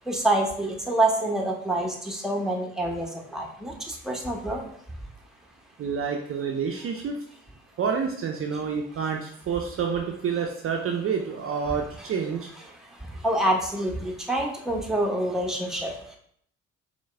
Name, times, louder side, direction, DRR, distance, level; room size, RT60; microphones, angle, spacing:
voice 1, 0.0-4.7 8.5-8.6 12.0-12.1 12.6-16.2, right 1 dB, ahead, 1 dB, 0.8 m, -27 dB
voice 2, 5.8-7.2 7.8-12.5, right 6 dB, 40° right, 2 dB, 0.5 m, -28 dB
4.5 x 2.2 x 3.3 m, 0.66 s
hypercardioid pair, 45°, 35 cm